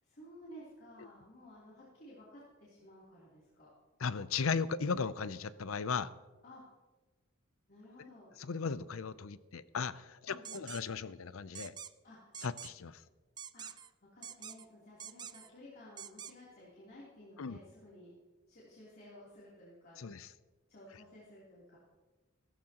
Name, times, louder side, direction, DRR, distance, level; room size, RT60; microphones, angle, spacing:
voice 1, 0.0-3.7 6.4-6.6 7.7-8.3 10.3-10.6 12.0-12.4 13.5-18.2 18.5-20.0 20.7-21.8, left 1 dB, 50° left, -8 dB, 3.3 m, -55 dB
voice 2, 4.0-6.1 8.4-11.8 12.4-13.0 17.4-17.6 20.0-20.3, left 5 dB, 80° left, 15 dB, 0.6 m, -36 dB
sound 1, 10.4-10.8 11.5-11.9 12.3-12.7 13.4-13.9 14.2-14.6 15.0-15.5 16.0-16.3, right 8 dB, 20° right, 0.3 m, -46 dB
15.5 x 14.0 x 3.0 m, 1.2 s
head